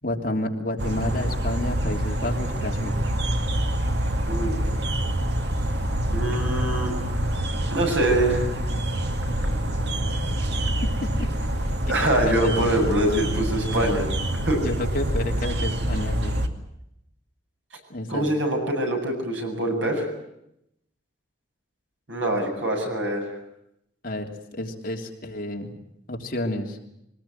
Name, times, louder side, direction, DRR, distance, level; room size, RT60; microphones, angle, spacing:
voice 1, 0.0-3.0 11.2-11.3 11.7-12.5 14.6-16.5 17.9-18.3 24.0-24.3 24.5-25.7 26.1-26.8, left 1 dB, 45° left, 2 dB, 3.2 m, -30 dB
sound 1, 0.8-16.5, right 1 dB, 60° right, 2.3 m, -26 dB
voice 2, 4.3-4.7 6.1-7.3 7.7-8.5 11.9-14.1 14.4-14.6 18.1-20.1 22.1-23.2, right 1 dB, 80° right, 2 dB, 7.9 m, -24 dB
23.0 x 19.5 x 9.3 m, 0.79 s
head